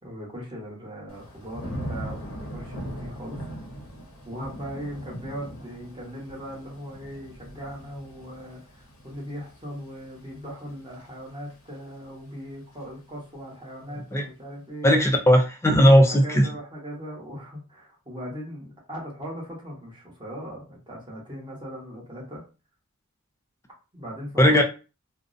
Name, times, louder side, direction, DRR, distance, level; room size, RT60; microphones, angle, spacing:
voice 1, 0.0-3.5 4.2-14.9 15.9-22.4 23.9-24.6, equal, 20° right, -3 dB, 1.0 m, -39 dB
Thunder / Rain, 1.1-12.0 12.4-12.9, equal, 80° left, 0.8 m, -40 dB
voice 2, 14.8-16.5 24.4-24.6, equal, 15° left, 4 dB, 0.4 m, -17 dB
2.4 x 2.0 x 2.5 m, 0.32 s
head